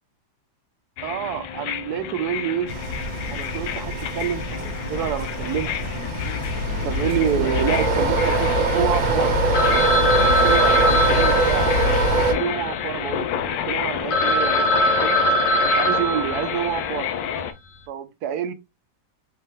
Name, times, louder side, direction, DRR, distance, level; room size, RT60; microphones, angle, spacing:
sound 1, 1.0-17.5, left 9 dB, 90° left, 1.3 m, -30 dB
voice 1, 1.0-2.7 3.3-6.0 6.8-9.4 10.2-11.7 12.3-15.2 15.7-17.1 17.9-18.5, right 9 dB, 70° right, 1.0 m, -28 dB
sound 2, 2.7-12.3, right 2 dB, 90° right, 1.7 m, -23 dB
Telephone, 9.5-13.3 13.8-13.9 14.1-17.0, equal, 60° left, 1.0 m, -22 dB
5.2 x 2.5 x 3.1 m
omnidirectional pair, 2.0 m